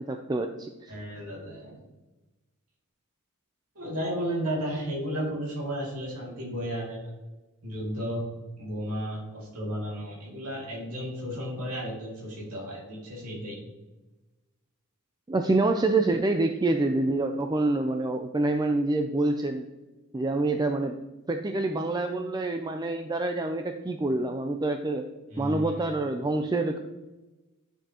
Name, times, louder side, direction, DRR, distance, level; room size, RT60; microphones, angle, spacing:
voice 1, 0.0-0.9 15.3-19.7 20.1-20.9 21.3-25.1 25.4-26.8, right 2 dB, 20° right, 5 dB, 0.4 m, -26 dB
voice 2, 0.9-1.8 3.7-7.1 7.6-8.3 8.6-13.6 25.3-25.8, equal, 85° right, -3 dB, 2.5 m, -33 dB
10.5 x 6.8 x 2.9 m, 1.1 s
head